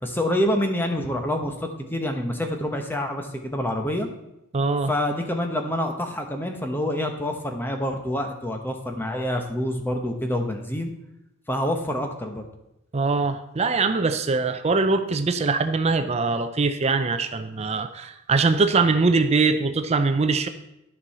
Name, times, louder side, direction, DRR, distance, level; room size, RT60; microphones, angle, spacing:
voice 1, 0.0-4.1 4.9-10.9 11.5-12.5, left 1 dB, 10° left, 4 dB, 1.0 m, -27 dB
voice 2, 4.5-4.9 12.9-20.5, right 4 dB, 30° right, 9 dB, 0.5 m, -22 dB
12.5 x 5.5 x 4.2 m, 0.87 s
head